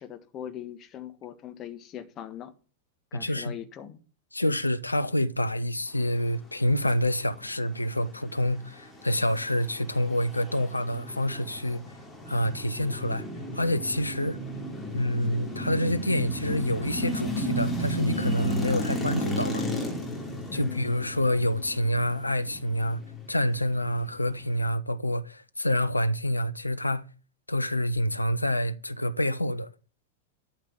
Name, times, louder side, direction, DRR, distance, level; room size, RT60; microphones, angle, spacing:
voice 1, 0.0-2.5 3.1-4.0 20.4-21.0, left 10 dB, 30° left, 1.5 m, -41 dB
voice 2, 3.1-3.5 4.3-11.8 12.3-13.3 13.5-14.4 14.9-19.7 20.5-23.0 23.3-27.1 27.5-29.7, left 1 dB, 85° left, 0.6 m, -27 dB
sound 1, 8.0-24.7, equal, 10° left, 2.9 m, -34 dB
11.5 x 5.0 x 7.4 m
figure-of-eight pair, 90°, 0 cm